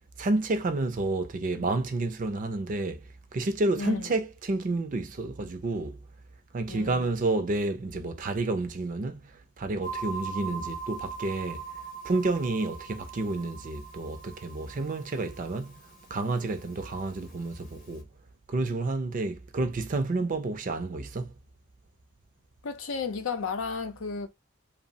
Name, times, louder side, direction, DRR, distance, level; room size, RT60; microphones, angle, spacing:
voice 1, 0.2-6.0 6.5-11.6 12.0-15.8 16.1-18.1 18.5-21.3, right 2 dB, 40° right, 0.4 m, -30 dB
voice 2, 3.8-4.1 6.7-7.1 22.6-24.3, left 4 dB, 85° left, 0.6 m, -33 dB
sound 1, 9.8-18.0, right 5 dB, 40° left, 0.8 m, -42 dB
2.9 x 2.0 x 2.6 m
head